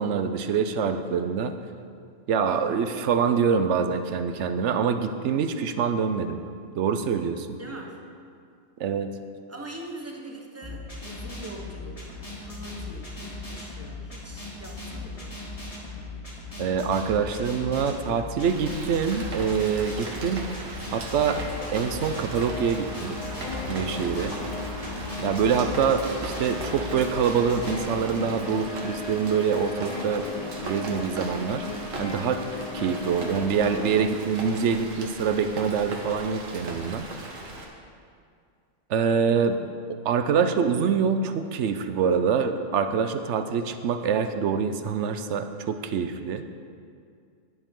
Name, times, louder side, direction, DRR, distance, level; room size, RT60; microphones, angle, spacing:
voice 1, 0.0-1.6 2.3-6.4 6.8-7.6 8.8-9.1 16.6-20.5 20.9-21.4 21.7-23.2 23.7-24.3 25.2-30.3 30.6-31.6 32.0-32.4 32.7-37.1 38.9-39.6 40.0-46.4, right 6 dB, 70° right, 9 dB, 0.9 m, -25 dB
voice 2, 7.6-8.1 9.5-12.1 12.4-15.4 23.9-24.6, right 2 dB, 10° right, 0 dB, 1.1 m, -42 dB
sound 1, 10.6-27.8, left 3 dB, 30° left, 1.9 m, -38 dB
Rain, 18.4-37.6, right 2 dB, 85° right, 1.6 m, -38 dB
sound 2, 20.9-34.1, left 4 dB, 55° left, 0.4 m, -37 dB
12.0 x 10.5 x 3.7 m, 2.3 s
omnidirectional pair, 1.3 m